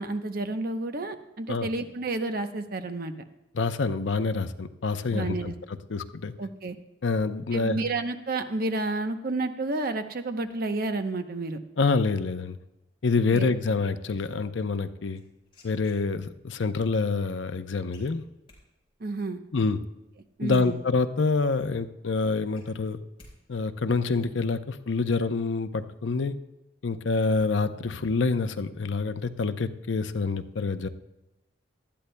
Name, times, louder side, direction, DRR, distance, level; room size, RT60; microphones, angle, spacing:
voice 1, 0.0-3.1 5.1-5.5 6.4-6.8 7.5-11.6 13.3-13.5 19.0-19.4 20.4-20.8, right 2 dB, 55° right, 8 dB, 0.8 m, -30 dB
voice 2, 3.5-5.5 5.9-6.3 7.0-7.8 11.8-12.6 13.0-15.2 15.6-18.2 19.5-19.8 20.4-23.0 23.5-26.3 26.8-30.9, left 4 dB, 80° left, 10 dB, 0.6 m, -27 dB
sound 1, 15.1-16.5 17.9-18.6 20.0-20.1 20.4-21.3 21.7-21.8 22.1-23.3 23.6-24.1, left 2 dB, 30° left, 4.1 m, -55 dB
19.0 x 12.5 x 2.2 m, 0.99 s
head